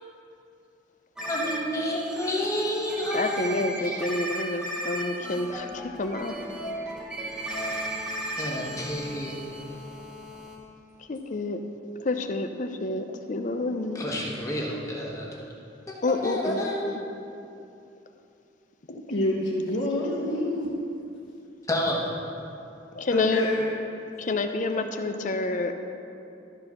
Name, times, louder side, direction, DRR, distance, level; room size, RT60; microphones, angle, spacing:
sound 1, 1.2-10.6, right 1 dB, 5° right, 1.1 m, -35 dB
voice 1, 1.3-4.0 8.4-9.3 13.9-15.3 15.9-16.8 21.7-22.0, left 1 dB, 15° left, -3 dB, 1.4 m, -30 dB
voice 2, 3.1-6.4 11.1-11.6 12.0-14.0 16.0-17.0 18.9-19.0 22.9-23.5 24.2-25.7, left 2 dB, 45° left, 7 dB, 0.6 m, -28 dB
voice 3, 19.1-20.7 23.1-23.6, left 1 dB, 80° left, -6 dB, 1.3 m, -27 dB
13.0 x 4.4 x 6.5 m, 2.7 s
head